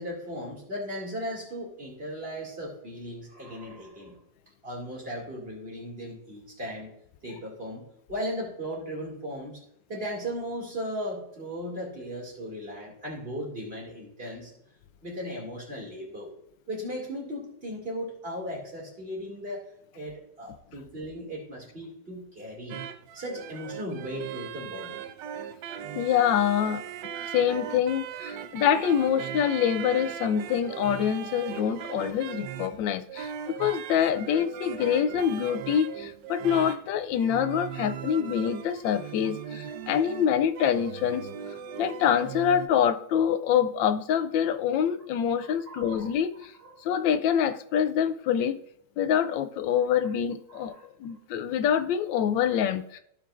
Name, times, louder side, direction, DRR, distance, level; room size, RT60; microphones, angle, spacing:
voice 1, 0.0-4.2 4.6-6.9 7.2-9.6 9.9-14.5 15.0-16.3 16.7-19.6 19.9-22.8 23.1-25.0 45.4-46.8 50.0-50.1 50.5-51.2, equal, 30° right, 2.5 m, -37 dB
sound 1, 22.7-42.7, right 9 dB, 80° right, 1.3 m, -38 dB
voice 2, 25.9-26.8 27.3-33.3 33.6-41.3 41.8-46.5 46.8-48.6 49.0-50.7 51.0-53.0, left 8 dB, 85° left, 1.3 m, -25 dB
15.0 x 5.3 x 2.5 m
omnidirectional pair, 2.0 m